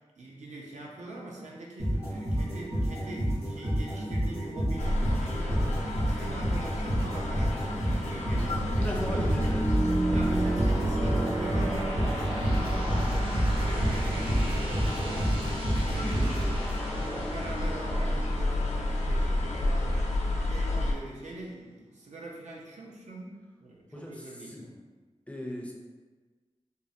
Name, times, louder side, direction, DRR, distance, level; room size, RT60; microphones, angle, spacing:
voice 1, 0.0-9.3 10.1-16.5 16.8-24.8, right 2 dB, 90° right, -2 dB, 0.5 m, -43 dB
sound 1, 1.8-17.1, right 1 dB, 65° right, 1.4 m, -29 dB
sound 2, 4.8-20.9, left 1 dB, 85° left, 0.4 m, -31 dB
sound 3, 7.6-20.2, right 1 dB, 50° right, 0.6 m, -34 dB
voice 2, 8.8-10.0 15.0-15.1 16.0-17.1 23.9-24.6 25.3-25.7, equal, 10° left, -1 dB, 0.4 m, -38 dB
3.4 x 2.0 x 2.6 m, 1.3 s
wide cardioid pair, 100°, 12 cm